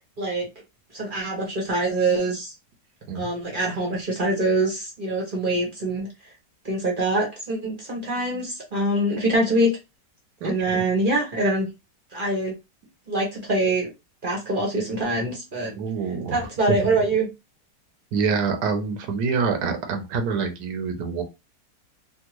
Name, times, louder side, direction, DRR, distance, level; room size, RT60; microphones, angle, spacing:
voice 1, 0.2-0.5 0.9-2.5 3.1-6.1 6.6-9.7 10.4-11.7 12.1-12.5 13.1-13.9 14.2-15.7 16.3-17.3, right 2 dB, 40° right, -1 dB, 0.8 m, -24 dB
voice 2, 10.4-10.8 15.7-16.9 18.1-21.2, right 5 dB, 70° right, 6 dB, 1.2 m, -26 dB
3.5 x 2.1 x 2.9 m, 0.25 s
omnidirectional pair, 2.0 m